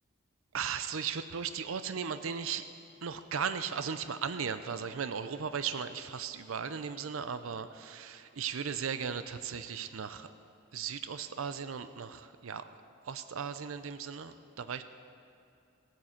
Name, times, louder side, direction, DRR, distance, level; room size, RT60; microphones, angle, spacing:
voice 1, 0.5-2.7 3.0-10.3 10.7-12.7 13.0-14.8, right 6 dB, 85° right, 11 dB, 0.5 m, -37 dB
16.0 x 9.3 x 7.3 m, 2.7 s
head